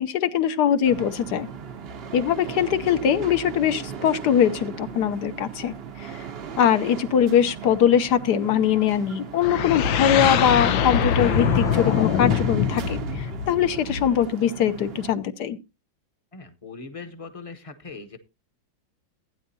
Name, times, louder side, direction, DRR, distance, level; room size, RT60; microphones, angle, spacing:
voice 1, 0.0-1.5 2.1-6.2 6.6-15.6, left 9 dB, 65° left, 11 dB, 1.3 m, -22 dB
sound 1, 0.8-15.1, right 7 dB, 55° right, 0.7 m, -37 dB
sound 2, 9.4-14.2, left 8 dB, 85° left, 1.5 m, -23 dB
voice 2, 16.3-18.2, left 4 dB, 25° left, 8 dB, 0.8 m, -40 dB
16.0 x 9.5 x 2.7 m, 0.27 s
omnidirectional pair, 2.0 m